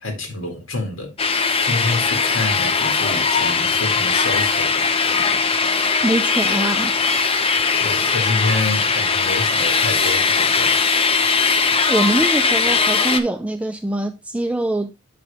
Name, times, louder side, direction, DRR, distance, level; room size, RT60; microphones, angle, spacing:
voice 1, 0.0-1.1 1.6-4.9 7.8-10.7, left 2 dB, 75° left, 2.0 m, -27 dB
sound 1, 1.2-13.2, left 4 dB, 25° left, 0.7 m, -19 dB
voice 2, 6.0-7.0 11.9-14.9, right 1 dB, 5° right, 0.4 m, -23 dB
7.6 x 5.4 x 3.3 m
head